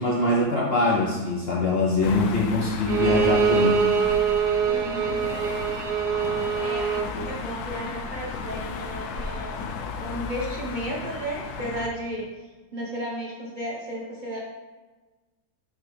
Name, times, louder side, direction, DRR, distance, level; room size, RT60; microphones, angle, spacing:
voice 1, 0.0-3.9 7.1-7.3, left 2 dB, 55° left, -4 dB, 0.7 m, -23 dB
sound 1, 2.0-11.9, left 5 dB, 75° left, 1.1 m, -34 dB
Bowed string instrument, 2.9-7.1, right 7 dB, 85° right, 1.2 m, -24 dB
voice 2, 4.7-5.3 6.5-6.9 7.2-9.7 10.0-12.3 12.7-14.4, equal, 40° right, -4 dB, 0.7 m, -34 dB
9.3 x 3.3 x 3.3 m, 1.3 s
omnidirectional pair, 1.7 m